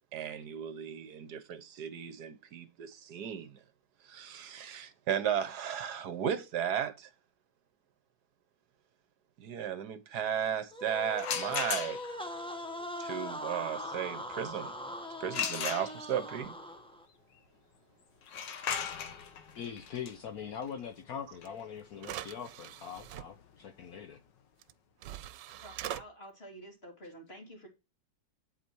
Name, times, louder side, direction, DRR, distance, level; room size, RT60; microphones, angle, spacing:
voice 1, 0.1-3.6 4.0-7.1 9.4-12.0 13.0-14.7 15.2-16.5, right 9 dB, 70° right, 1.4 m, -35 dB
sound 1, 10.7-17.1, left 1 dB, 5° left, 1.0 m, -41 dB
sound 2, 11.1-12.3 15.3-16.4 18.2-23.9, left 7 dB, 85° left, 1.7 m, -38 dB
voice 2, 19.6-24.2, left 8 dB, 65° left, 1.2 m, -42 dB
sound 3, 21.5-21.6 22.0-23.2 24.6-24.7 25.0-26.0, right 12 dB, 85° right, 1.3 m, -42 dB
voice 3, 25.6-27.7, equal, 35° left, 3.1 m, -49 dB
8.5 x 8.1 x 4.6 m
omnidirectional pair, 1.9 m